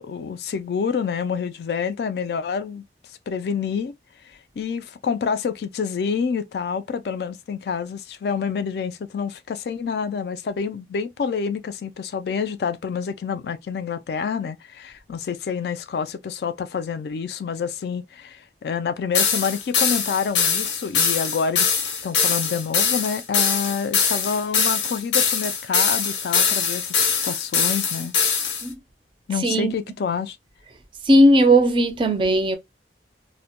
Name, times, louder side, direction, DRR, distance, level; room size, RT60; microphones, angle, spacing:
voice 1, 0.0-2.8 3.3-4.0 4.3-28.5 29.3-30.4, left 6 dB, 60° left, 0.3 m, -28 dB
sound 1, 19.1-28.7, left 6 dB, 90° left, 0.7 m, -22 dB
voice 2, 29.4-29.7 31.0-32.6, right 1 dB, 30° right, 0.4 m, -17 dB
2.1 x 2.1 x 2.8 m
head